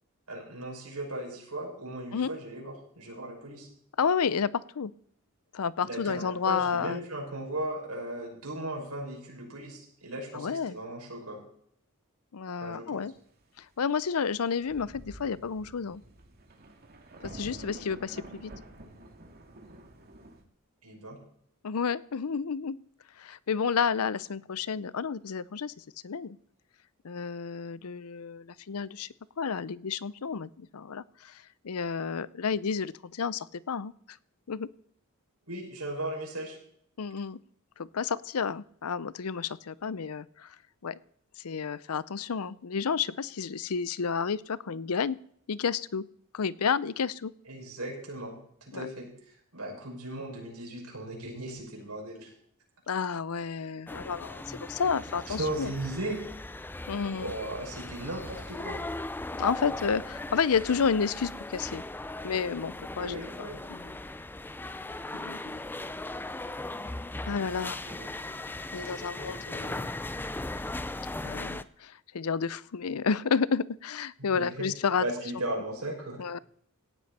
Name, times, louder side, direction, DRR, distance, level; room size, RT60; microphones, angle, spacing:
voice 1, 0.3-3.7 5.8-11.4 12.6-13.0 20.8-21.2 35.5-36.6 47.4-48.3 48.6-52.3 55.3-56.2 57.2-58.8 63.0-63.6 67.8-68.1 74.2-74.7 75.0-76.2, right 1 dB, 85° right, 0 dB, 6.2 m, -37 dB
voice 2, 4.0-4.9 5.5-7.0 10.3-10.8 12.3-13.1 13.6-16.0 17.2-18.5 21.6-22.8 23.2-26.4 27.0-29.1 29.4-34.2 34.5-34.7 37.0-37.4 37.8-40.6 40.8-41.0 41.4-45.2 45.5-46.1 46.3-47.3 48.7-48.9 52.9-55.7 56.9-57.3 59.4-61.8 62.2-63.2 63.7-63.9 65.1-65.6 67.2-67.8 68.7-69.9 71.2-75.1 76.2-76.4, left 6 dB, 85° left, 19 dB, 0.6 m, -31 dB
Thunder, 14.3-14.4 14.6-20.4, right 1 dB, 45° right, 2.2 m, -48 dB
sound 1, 53.9-71.6, left 2 dB, 10° left, 0.4 m, -38 dB
17.5 x 12.5 x 4.3 m, 0.66 s
head